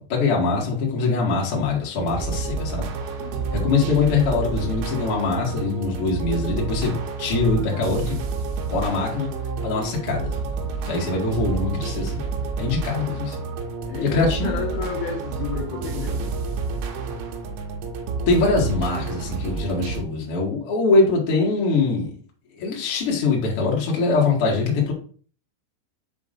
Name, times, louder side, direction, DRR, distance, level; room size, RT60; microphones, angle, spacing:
voice 1, 0.0-2.9 3.5-8.2 8.7-9.3 9.6-10.4 10.8-12.3 12.6-13.4 14.0-14.6 18.3-22.1 22.6-24.9, left 3 dB, 55° left, -2 dB, 1.6 m, -23 dB
sound 1, 2.0-20.0, right 4 dB, 90° right, 3.1 m, -29 dB
voice 2, 3.2-3.7 10.9-11.5 13.8-16.4, left 6 dB, 75° left, 0 dB, 2.2 m, -33 dB
9.2 x 5.2 x 2.5 m, 0.43 s
omnidirectional pair, 5.5 m